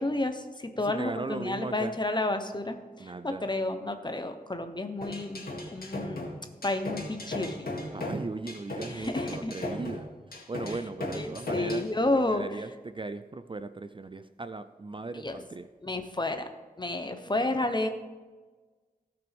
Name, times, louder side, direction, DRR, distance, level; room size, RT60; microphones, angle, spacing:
voice 1, 0.0-5.4 5.7-6.3 6.6-7.7 8.9-9.5 10.7-10.8 11.1-12.4 15.1-15.4 15.8-16.4 16.8-17.9, left 2 dB, 30° left, 7 dB, 0.9 m, -31 dB
voice 2, 0.8-1.9 3.0-3.5 7.9-10.1 10.5-11.8 12.3-15.7, right 3 dB, 35° right, 11 dB, 0.4 m, -37 dB
sound 1, 5.0-11.9, left 1 dB, 85° left, 2.0 m, -36 dB
16.5 x 6.0 x 3.5 m, 1.4 s
wide cardioid pair, 75°, 15 cm